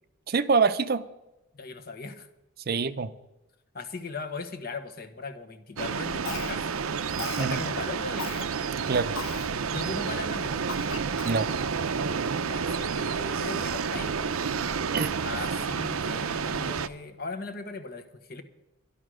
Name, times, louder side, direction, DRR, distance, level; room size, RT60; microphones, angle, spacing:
voice 1, 0.3-1.1 2.7-3.1 7.4-7.6 8.9-9.1 11.2-11.5 14.9-15.1, right 4 dB, 45° right, 12 dB, 0.6 m, -25 dB
voice 2, 1.5-2.1 3.7-6.8 7.4-8.4 9.7-10.7 12.5-14.1 15.2-18.4, left 3 dB, 45° left, 9 dB, 1.2 m, -38 dB
sound 1, 5.8-16.9, right 6 dB, 90° right, 0.6 m, -30 dB
Cough, 6.3-6.8 7.2-7.5 8.2-8.5 9.2-9.5 10.0-10.1 10.7-11.5, left 6 dB, 85° left, 0.7 m, -37 dB
12.0 x 11.5 x 6.3 m, 0.95 s
head